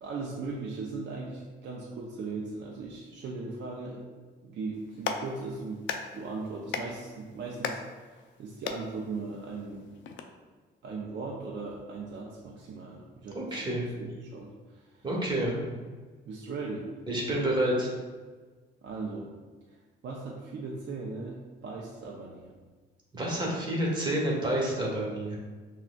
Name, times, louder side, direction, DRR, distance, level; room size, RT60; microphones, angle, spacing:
voice 1, 0.0-4.1 4.4-5.8 6.1-7.8 8.4-9.9 10.8-13.6 14.0-15.1 16.3-16.9 18.8-19.3 19.7-19.8 20.0-22.6, right 3 dB, 60° right, -3 dB, 0.5 m, -38 dB
Clapping, 4.7-10.2, left 6 dB, 70° left, 0.4 m, -39 dB
voice 2, 13.3-13.9 15.0-15.6 17.1-17.9 23.1-25.4, right 1 dB, 25° right, -3 dB, 1.2 m, -29 dB
6.0 x 2.3 x 2.2 m, 1.4 s
cardioid pair, 90°, 20 cm